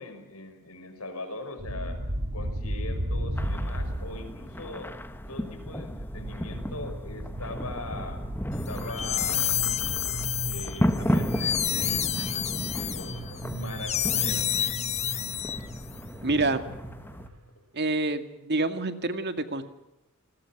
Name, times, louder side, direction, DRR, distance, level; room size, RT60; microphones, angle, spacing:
voice 1, 0.0-2.0 2.3-4.9 5.3-8.2 8.7-9.5 10.4-14.5, left 2 dB, 80° left, 8 dB, 5.8 m, -41 dB
sound 1, 1.6-17.4, right 1 dB, 70° right, 5.7 m, -36 dB
sound 2, 3.4-17.3, equal, 10° left, 1.4 m, -34 dB
sound 3, 8.7-15.9, left 10 dB, 30° left, 0.8 m, -29 dB
voice 2, 16.2-16.6 17.7-19.6, right 2 dB, 50° right, 9 dB, 2.2 m, -27 dB
29.5 x 20.5 x 6.1 m, 0.92 s
head